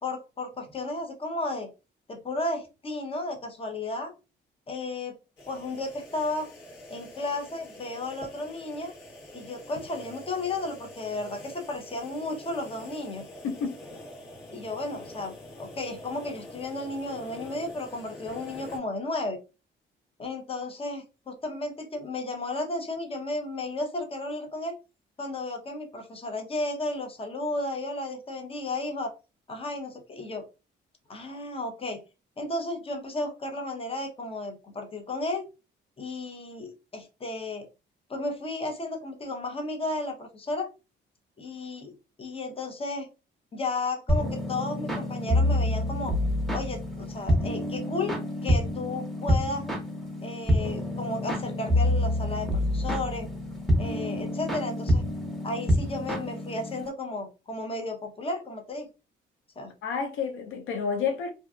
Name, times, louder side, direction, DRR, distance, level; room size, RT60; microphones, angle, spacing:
voice 1, 0.0-1.7 2.1-4.1 4.7-5.2 5.5-6.5 6.9-8.9 9.3-13.2 14.5-19.4 20.2-24.7 25.2-29.1 29.5-30.4 31.1-32.0 32.4-35.4 36.0-37.7 38.1-40.7 41.4-43.1 43.5-46.1 46.5-49.8 50.2-53.3 53.8-55.0 55.4-58.9 59.6-59.7, left 2 dB, 30° left, 0.7 m, -33 dB
sound 1, 5.4-18.8, left 1 dB, 60° left, 1.3 m, -45 dB
voice 2, 13.4-13.8 59.8-61.3, left 6 dB, 85° left, 0.5 m, -30 dB
sound 2, 44.1-56.9, left 1 dB, ahead, 0.9 m, -27 dB
2.6 x 2.2 x 2.3 m
cardioid pair, 90°, 20 cm